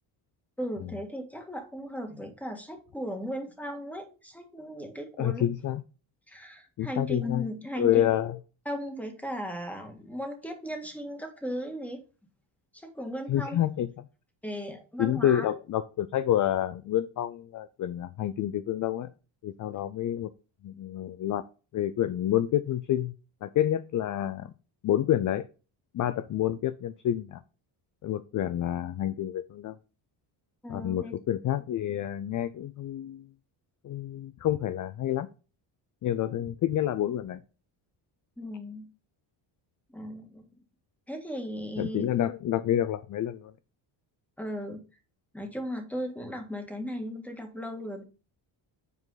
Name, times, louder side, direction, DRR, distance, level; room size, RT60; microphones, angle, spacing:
voice 1, 0.6-5.4 6.3-8.1 8.6-12.0 12.7-13.6 14.4-15.5 30.6-31.2 38.4-38.8 39.9-40.5 41.1-42.1 44.4-44.8 45.3-48.0, equal, 5° left, 4 dB, 1.7 m, -36 dB
voice 2, 5.2-5.8 6.8-7.4 7.8-8.4 13.3-14.0 15.0-19.1 19.4-20.3 20.6-21.5 21.7-23.1 23.4-24.5 24.8-25.4 25.9-27.4 28.0-29.8 30.7-33.3 33.8-35.3 36.0-37.4 41.8-43.5, left 11 dB, 40° left, 14 dB, 0.5 m, -28 dB
8.0 x 4.8 x 4.0 m, 0.34 s
cardioid pair, 115°, 48 cm